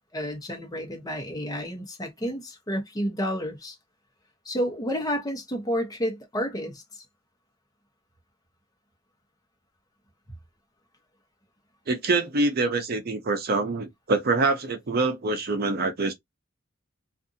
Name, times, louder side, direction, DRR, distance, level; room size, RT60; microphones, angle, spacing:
voice 1, 0.1-3.8 4.4-7.0, equal, 20° left, 0.9 m, -30 dB
voice 2, 11.9-16.1, right 3 dB, 50° right, 0.6 m, -25 dB
2.6 x 2.5 x 2.6 m
head